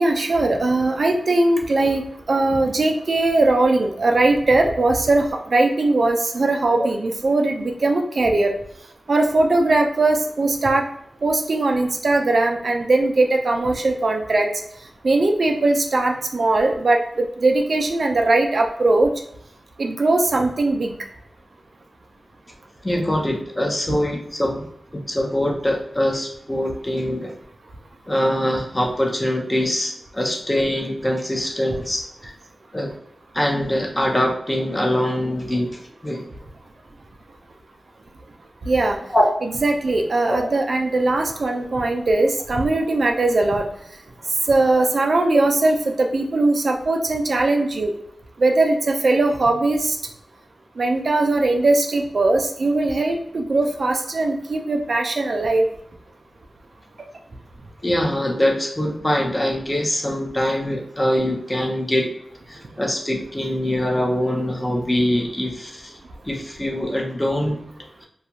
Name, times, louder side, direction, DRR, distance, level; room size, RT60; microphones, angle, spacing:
voice 1, 0.0-8.5 9.1-10.9 11.2-14.5 15.0-19.1 19.8-20.9 38.7-39.0 39.6-43.7 44.5-47.9 48.4-50.0 50.8-55.7, right 2 dB, 65° right, 3 dB, 0.3 m, -20 dB
voice 2, 22.8-27.3 28.1-32.3 32.7-32.9 33.3-36.2 39.1-39.4 40.2-40.4 57.8-62.1 62.5-65.9 66.2-67.6, left 1 dB, 20° left, 0 dB, 0.6 m, -23 dB
2.4 x 2.2 x 2.8 m, 0.72 s
wide cardioid pair, 65°, 0 cm